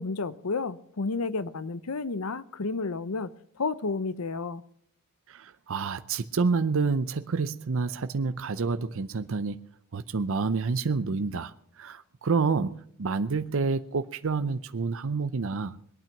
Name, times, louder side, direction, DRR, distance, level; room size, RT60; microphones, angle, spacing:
voice 1, 0.0-3.3 3.6-4.6, left 4 dB, 75° left, 0.8 m, -31 dB
voice 2, 5.3-9.6 9.9-15.8, right 4 dB, 65° right, 0.6 m, -28 dB
22.0 x 9.1 x 5.9 m
head